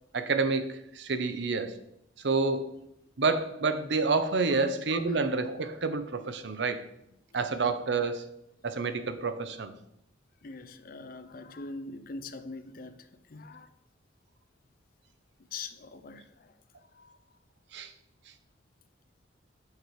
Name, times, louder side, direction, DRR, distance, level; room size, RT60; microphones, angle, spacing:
voice 1, 0.1-1.8 2.2-2.8 3.2-6.8 7.3-8.3 8.6-9.7 17.7-17.9, right 4 dB, 65° right, 0.6 m, -29 dB
voice 2, 10.4-13.7 15.5-16.5 16.9-17.1, left 3 dB, 50° left, 0.5 m, -43 dB
6.5 x 5.0 x 4.6 m
head